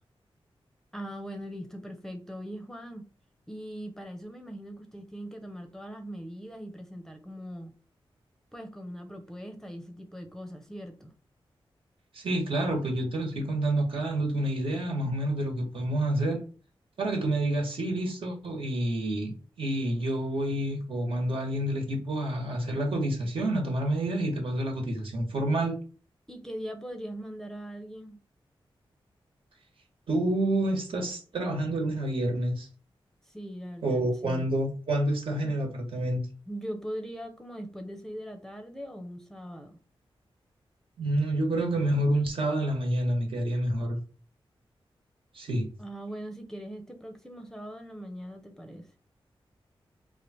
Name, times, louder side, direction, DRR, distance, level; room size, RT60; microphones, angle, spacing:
voice 1, 0.9-3.1 3.5-7.7 8.5-11.1 26.3-28.2 33.3-34.5 36.5-39.8 45.8-48.9, equal, 5° left, 0.7 m, -40 dB
voice 2, 12.1-16.4 17.0-25.8 30.1-32.7 33.8-36.2 41.0-44.0 45.3-45.7, right 1 dB, 70° right, 1.3 m, -28 dB
3.2 x 2.4 x 4.2 m
wide cardioid pair, 115°, 10 cm